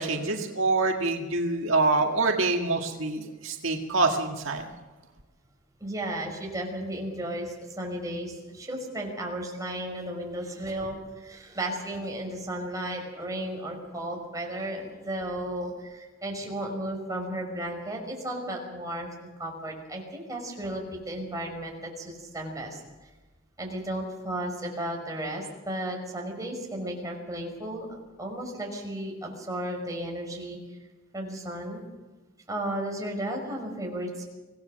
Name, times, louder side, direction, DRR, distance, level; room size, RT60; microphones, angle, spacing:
voice 1, 0.0-4.7, right 3 dB, 75° right, 2 dB, 1.9 m, -26 dB
voice 2, 5.8-22.8 23.6-30.8 31.1-31.8 32.5-34.3, right 1 dB, 15° right, 1 dB, 5.3 m, -34 dB
25.0 x 17.5 x 6.5 m, 1.2 s
head